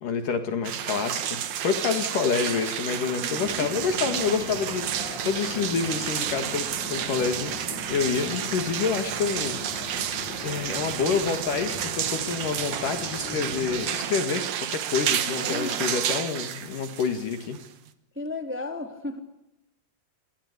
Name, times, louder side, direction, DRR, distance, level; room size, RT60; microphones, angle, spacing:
voice 1, 0.0-6.6 6.9-9.6 10.4-17.6, left 5 dB, 60° left, 7 dB, 3.3 m, -28 dB
sound 1, 0.6-17.9, right 10 dB, 60° right, 2.3 m, -31 dB
voice 2, 3.2-3.7 15.3-15.8 18.1-19.2, left 2 dB, 5° right, 5 dB, 2.7 m, -34 dB
sound 2, 3.4-14.0, left 2 dB, 40° left, 5.2 m, -39 dB
28.5 x 23.0 x 8.2 m, 0.88 s
omnidirectional pair, 4.7 m